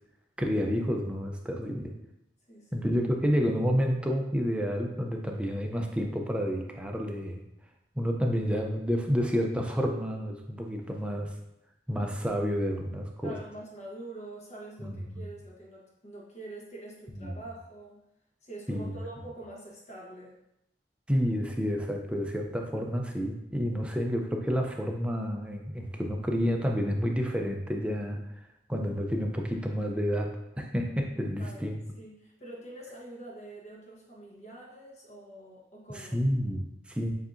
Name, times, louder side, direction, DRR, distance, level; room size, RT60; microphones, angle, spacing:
voice 1, 0.4-1.9 2.7-7.4 8.0-11.4 11.9-13.4 14.8-15.3 17.2-17.3 18.7-19.0 21.1-28.2 28.7-31.8 35.9-37.1, equal, 5° right, 2 dB, 0.4 m, -29 dB
voice 2, 2.5-2.9 13.2-18.0 18.4-20.4 31.4-36.1, right 2 dB, 40° left, -3 dB, 1.0 m, -45 dB
7.0 x 2.7 x 2.5 m, 0.85 s
head